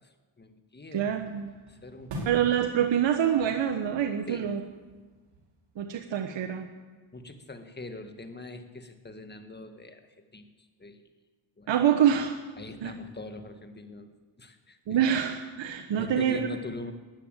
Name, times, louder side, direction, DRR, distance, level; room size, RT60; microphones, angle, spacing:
voice 1, 0.0-1.3 1.7-2.4 4.3-4.5 7.1-11.0 11.6-11.7 12.6-14.1 14.4-15.0 15.7-16.9, left 2 dB, 20° left, 7 dB, 1.7 m, -43 dB
voice 2, 0.9-1.5 2.3-4.6 5.8-6.7 11.7-12.4 12.8-12.9 14.9-16.5, right 9 dB, 60° right, 5 dB, 1.1 m, -26 dB
sound 1, 1.0-6.3, right 1 dB, 80° right, 4.9 m, -45 dB
14.0 x 9.8 x 8.9 m, 1.3 s
cardioid pair, 75°, 50 cm